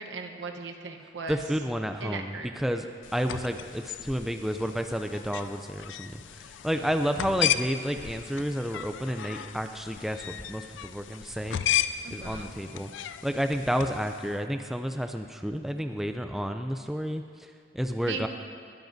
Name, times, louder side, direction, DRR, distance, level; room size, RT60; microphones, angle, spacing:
voice 1, 0.0-1.4 2.0-2.5 12.0-12.5 18.1-18.3, right 4 dB, 80° right, 3 dB, 1.0 m, -37 dB
voice 2, 1.3-11.6 12.1-18.3, equal, ahead, 6 dB, 0.3 m, -31 dB
sound 1, 3.0-14.4, left 11 dB, 90° left, 0.4 m, -35 dB
20.0 x 13.0 x 2.7 m, 2.1 s
head